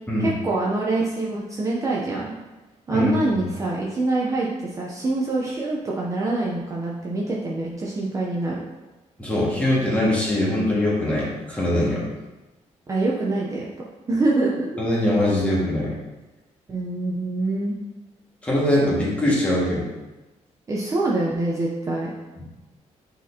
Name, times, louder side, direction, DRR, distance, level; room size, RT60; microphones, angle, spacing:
voice 1, 0.2-2.3 2.9-8.6 12.9-13.7 14.1-14.7 16.7-17.8 20.7-22.1, right 2 dB, 25° right, -4 dB, 0.7 m, -25 dB
voice 2, 9.2-12.1 14.8-15.9 18.4-19.8, left 1 dB, 10° left, -6 dB, 1.8 m, -22 dB
8.9 x 4.2 x 2.8 m, 1.1 s
cardioid pair, 165°, 12 cm